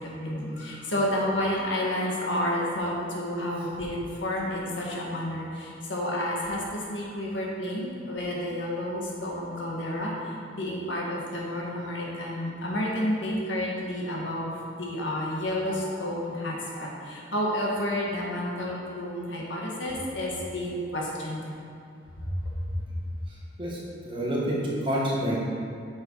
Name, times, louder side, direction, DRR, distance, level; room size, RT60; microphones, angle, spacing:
voice 1, 0.0-21.5 22.2-22.3, left 1 dB, 80° left, -3 dB, 1.8 m, -30 dB
voice 2, 24.0-25.4, equal, 25° right, -5 dB, 1.7 m, -27 dB
8.2 x 6.5 x 4.8 m, 2.4 s
head